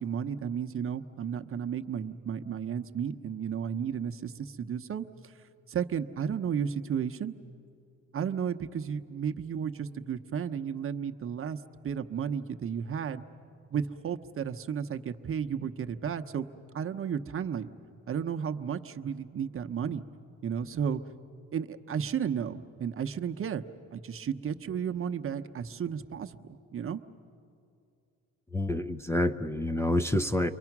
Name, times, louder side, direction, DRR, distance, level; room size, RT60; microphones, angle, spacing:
voice 1, 0.0-5.3 5.7-7.3 8.1-13.2 13.7-16.5 16.7-17.7 18.1-20.0 20.4-21.0 21.5-23.6 23.9-27.0, right 7 dB, 45° right, 8 dB, 0.8 m, -33 dB
voice 2, 28.5-30.5, left 1 dB, 10° left, 5 dB, 0.6 m, -28 dB
29.5 x 23.0 x 6.0 m, 2.5 s
cardioid pair, 90°, 30 cm